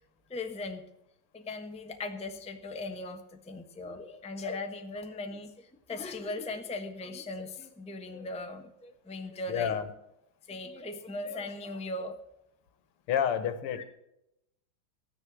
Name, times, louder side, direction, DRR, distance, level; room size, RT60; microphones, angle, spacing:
voice 1, 0.3-0.8 1.3-9.8 10.5-12.2 13.7-13.8, left 2 dB, 5° left, 5 dB, 0.7 m, -39 dB
voice 2, 9.5-9.9 13.1-13.8, left 8 dB, 85° left, 11 dB, 2.1 m, -29 dB
14.0 x 9.9 x 6.2 m, 0.84 s
omnidirectional pair, 2.4 m